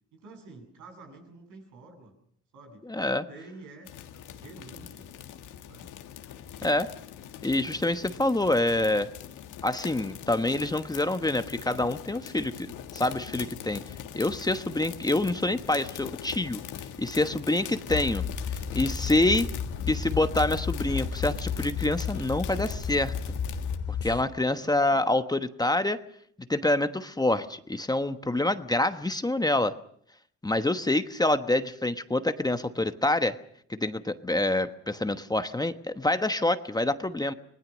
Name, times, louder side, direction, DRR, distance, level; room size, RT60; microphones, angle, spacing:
voice 1, 0.1-2.1 2.5-2.9 3.3-3.9 4.3-5.1 5.7-5.9 17.7-18.0 24.4-25.1, right 3 dB, 80° right, 4 dB, 7.9 m, -49 dB
voice 2, 2.9-3.3 6.6-6.9 7.4-9.1 9.6-13.8 14.1-16.6 17.0-18.2 18.7-19.5 19.9-23.1 24.0-26.0 26.5-29.7 30.4-33.4 33.7-37.3, left 2 dB, 15° left, 9 dB, 1.1 m, -26 dB
sound 1, 3.8-23.8, left 10 dB, 85° left, 1.8 m, -42 dB
sound 2, 17.9-24.2, left 6 dB, 50° left, 2.2 m, -32 dB
26.0 x 20.0 x 6.3 m, 0.65 s
cardioid pair, 90°, 30 cm